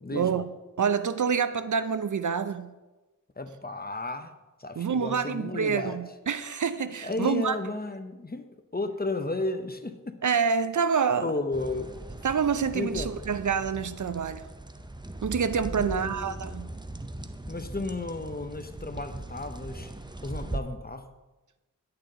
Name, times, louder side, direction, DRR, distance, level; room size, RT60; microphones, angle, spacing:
voice 1, 0.1-0.4 0.8-2.7 4.8-7.6 10.2-11.3 12.2-14.5 15.2-16.7, right 6 dB, 60° right, 0.5 m, -27 dB
voice 2, 3.4-4.3 4.6-6.0 7.0-10.2 11.2-11.9 12.7-13.1 15.8-16.4 17.5-19.9 20.2-21.1, left 2 dB, 30° left, 0.7 m, -33 dB
sound 1, 11.5-20.6, right 2 dB, 15° right, 0.6 m, -39 dB
10.5 x 8.7 x 3.9 m
wide cardioid pair, 65°, 33 cm